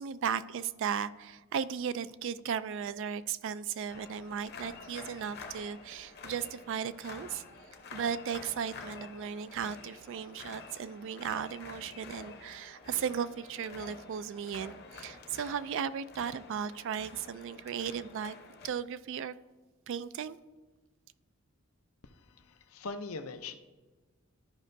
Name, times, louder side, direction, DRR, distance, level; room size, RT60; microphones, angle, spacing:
voice 1, 0.0-7.4 7.9-18.3 18.6-19.3 19.9-20.4, right 7 dB, 60° right, 15 dB, 0.3 m, -36 dB
sound 1, 3.9-18.7, left 4 dB, 50° left, 0.9 m, -49 dB
voice 2, 22.0-23.6, left 3 dB, 85° left, 8 dB, 0.6 m, -42 dB
13.0 x 5.3 x 2.6 m, 1.3 s
head